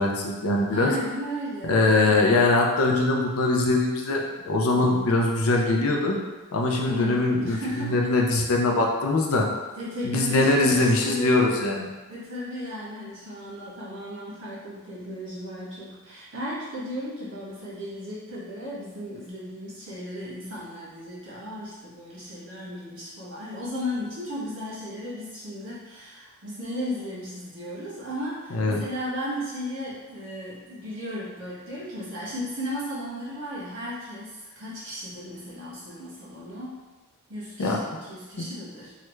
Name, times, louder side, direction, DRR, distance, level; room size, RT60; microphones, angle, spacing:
voice 1, 0.0-0.9 1.6-6.2 6.5-9.5 10.0-11.9 28.5-28.8 37.6-37.8 38.4-38.5, left 2 dB, 70° left, 0 dB, 0.5 m, -22 dB
voice 2, 0.7-2.4 6.9-8.0 9.8-11.5 12.1-36.8 37.3-38.9, left 1 dB, 60° right, -8 dB, 1.4 m, -35 dB
3.2 x 2.4 x 3.1 m, 1.2 s
head